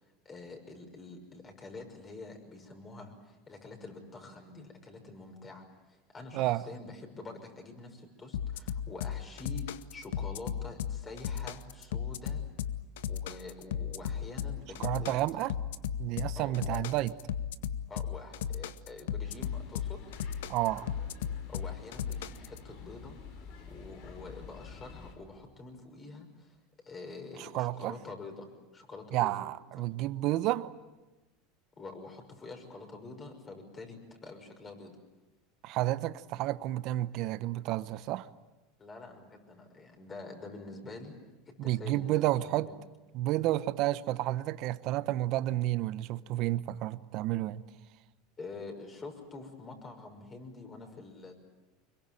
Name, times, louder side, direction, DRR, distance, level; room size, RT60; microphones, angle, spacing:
voice 1, 0.0-12.4 13.1-15.2 16.4-16.8 17.9-20.0 21.5-26.6 26.8-29.3 31.8-35.0 38.8-41.2 41.5-42.8 48.4-51.3, left 3 dB, 25° left, 5.9 m, -46 dB
sound 1, 8.3-22.6, left 9 dB, 80° left, 0.9 m, -35 dB
voice 2, 14.8-15.5 16.0-17.1 20.5-20.9 27.4-28.0 29.1-30.7 35.6-38.3 41.6-42.7 43.1-47.6, right 15 dB, 55° right, 0.9 m, -31 dB
sound 2, 19.2-25.1, left 6 dB, 65° left, 4.8 m, -49 dB
25.0 x 22.0 x 9.1 m
supercardioid pair, 110°, 0 cm